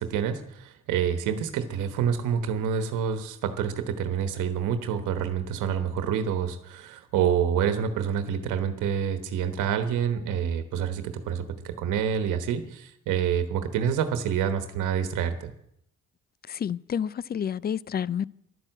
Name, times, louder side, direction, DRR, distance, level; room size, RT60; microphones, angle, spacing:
voice 1, 0.0-15.5, right 8 dB, 90° right, 1.2 m, -27 dB
voice 2, 16.5-18.3, left 8 dB, 30° left, 0.4 m, -29 dB
11.5 x 10.5 x 7.9 m
cardioid pair, 90°, 30 cm